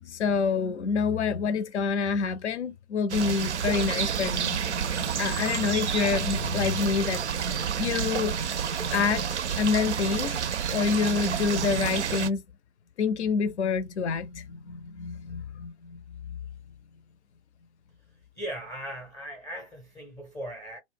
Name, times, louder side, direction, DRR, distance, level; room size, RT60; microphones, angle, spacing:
voice 1, 0.0-4.6 5.2-7.2 7.8-8.3 8.9-9.3 9.6-10.4 10.7-12.4 13.0-16.0 16.3-16.4, left 5 dB, 85° left, 0.5 m, -27 dB
sound 1, 3.1-12.3, right 7 dB, 90° right, 0.5 m, -29 dB
voice 2, 18.3-20.8, right 1 dB, 10° left, 0.5 m, -38 dB
2.4 x 2.0 x 3.5 m
hypercardioid pair, 125°, 33 cm